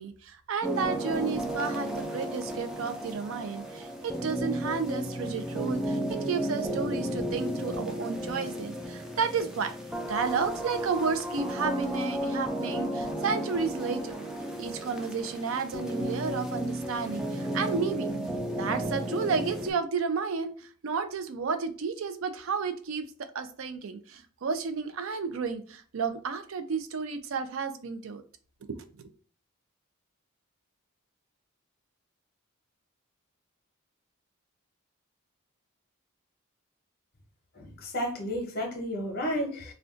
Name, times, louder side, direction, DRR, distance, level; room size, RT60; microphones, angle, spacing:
voice 1, 0.0-9.8 10.1-14.2 14.6-18.1 18.6-28.2 28.7-29.1, right 5 dB, 70° right, 9 dB, 0.4 m, -32 dB
sound 1, 0.6-19.7, equal, 5° right, 0.3 m, -33 dB
voice 2, 37.6-39.7, equal, 45° left, 2 dB, 0.8 m, -32 dB
2.4 x 2.2 x 3.7 m, 0.42 s
head